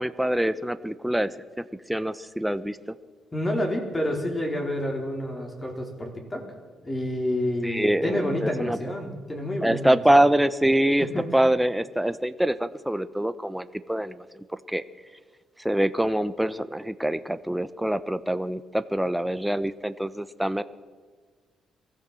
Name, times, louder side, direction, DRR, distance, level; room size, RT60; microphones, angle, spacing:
voice 1, 0.0-2.8 7.6-8.8 9.6-11.1 11.3-14.8 15.6-20.6, right 1 dB, 5° right, 13 dB, 0.9 m, -25 dB
voice 2, 3.3-6.4 6.8-10.0 11.0-11.3, left 1 dB, 20° left, 2 dB, 4.5 m, -29 dB
22.5 x 15.0 x 7.7 m, 1.5 s
cardioid pair, 90°, 0 cm